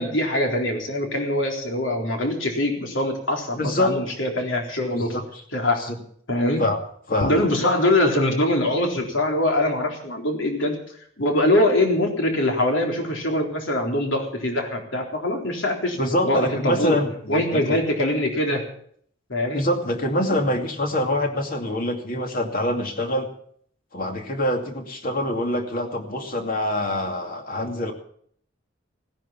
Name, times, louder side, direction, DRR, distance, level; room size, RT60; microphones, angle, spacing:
voice 1, 0.0-5.2 5.5-5.8 6.3-6.6 7.2-10.8 11.2-16.0 16.2-17.0 17.3-18.6 19.3-19.6, left 1 dB, 70° left, 2 dB, 3.9 m, -23 dB
voice 2, 3.6-4.0 4.9-5.4 6.6-6.8 7.1-7.3 16.0-17.8 19.5-23.3 23.9-27.9, left 1 dB, 45° left, 4 dB, 2.6 m, -25 dB
17.0 x 10.5 x 7.2 m, 0.62 s
head